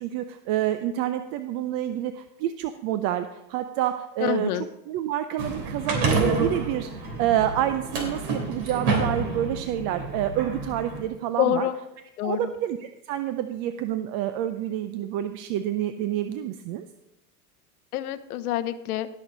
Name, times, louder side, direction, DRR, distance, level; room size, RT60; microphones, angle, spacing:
voice 1, 0.0-11.7 12.2-16.9, right 12 dB, 50° right, 10 dB, 0.6 m, -28 dB
voice 2, 4.2-4.6 11.4-11.8 12.2-12.5 17.9-19.1, left 12 dB, 85° left, 12 dB, 0.9 m, -26 dB
sound 1, 5.4-11.0, right 3 dB, 75° right, 3.2 m, -28 dB
17.5 x 6.4 x 3.9 m, 0.93 s
supercardioid pair, 110°, 43 cm